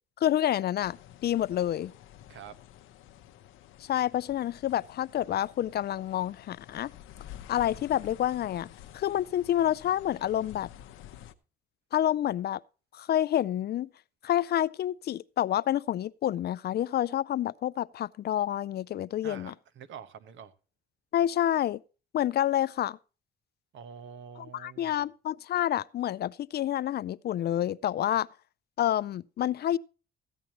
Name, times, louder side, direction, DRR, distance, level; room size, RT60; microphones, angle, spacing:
voice 1, 0.2-1.0 1.2-1.9 3.9-6.9 7.5-8.7 8.9-10.7 11.9-12.6 12.9-13.9 14.2-19.5 21.1-21.8 22.1-23.0 24.5-28.3 28.8-29.8, left 11 dB, 55° left, 0.4 m, -28 dB
sound 1, 0.8-11.3, left 11 dB, 85° left, 0.7 m, -50 dB
voice 2, 19.2-20.5 23.7-24.9, right 7 dB, 70° right, 1.1 m, -46 dB
14.5 x 9.1 x 2.9 m
cardioid pair, 90°, 20 cm